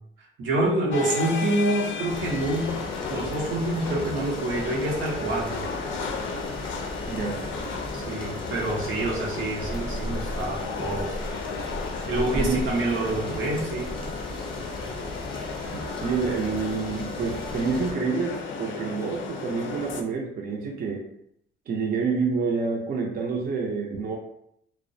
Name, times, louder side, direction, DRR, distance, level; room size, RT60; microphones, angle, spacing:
voice 1, 0.4-2.8 3.1-5.6 7.9-11.1 12.1-13.9, right 2 dB, 85° right, -2 dB, 0.7 m, -27 dB
sound 1, 0.9-20.0, left 4 dB, 80° left, 0.4 m, -34 dB
sound 2, 2.1-17.9, left 1 dB, 25° left, 0.7 m, -36 dB
voice 2, 7.1-7.4 12.4-12.6 16.0-21.1 21.7-24.2, right 5 dB, 50° right, 0 dB, 0.5 m, -28 dB
2.3 x 2.1 x 2.6 m, 0.73 s
cardioid pair, 90°, 20 cm